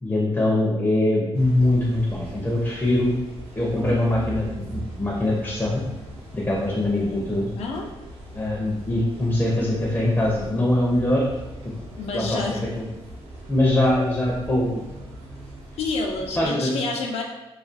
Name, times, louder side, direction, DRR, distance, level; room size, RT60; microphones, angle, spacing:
voice 1, 0.0-3.1 3.6-5.8 6.3-7.5 8.3-11.3 11.6-11.8 12.1-12.4 13.5-14.9 16.4-16.8, left 1 dB, 15° left, -4 dB, 0.5 m, -22 dB
sound 1, 1.3-16.5, right 1 dB, 65° right, 0.7 m, -40 dB
voice 2, 7.5-7.9 11.9-12.6 15.8-17.2, left 3 dB, 80° left, 1 dB, 0.4 m, -28 dB
2.3 x 2.3 x 2.5 m, 1.0 s
cardioid pair, 95°, 10 cm